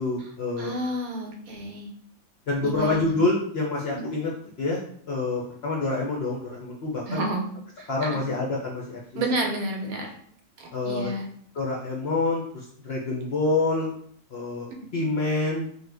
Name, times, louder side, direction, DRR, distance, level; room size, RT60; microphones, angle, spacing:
voice 1, 0.0-0.7 2.5-4.3 4.6-4.8 5.1-7.3 7.9-9.2 10.7-11.1 11.5-13.9 14.3-15.7, left 3 dB, 65° left, -3 dB, 0.6 m, -27 dB
voice 2, 0.6-1.9 2.6-3.2 3.9-4.0 7.1-7.5 7.8-8.2 9.1-10.2 10.6-11.3, right 1 dB, 80° right, 2 dB, 1.1 m, -30 dB
3.1 x 2.1 x 3.3 m, 0.62 s
omnidirectional pair, 1.6 m